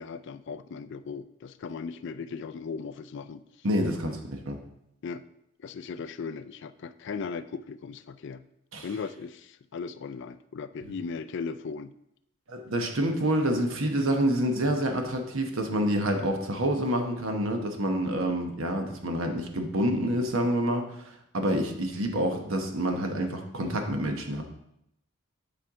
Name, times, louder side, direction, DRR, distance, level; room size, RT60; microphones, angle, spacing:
voice 1, 0.0-3.4 5.0-5.3 5.6-8.4 8.8-11.9, left 5 dB, 55° left, 13 dB, 0.3 m, -37 dB
voice 2, 3.6-4.6 8.7-8.9 12.5-20.8 21.3-24.4, right 1 dB, 70° right, 4 dB, 1.0 m, -27 dB
10.0 x 4.4 x 3.6 m, 0.79 s
head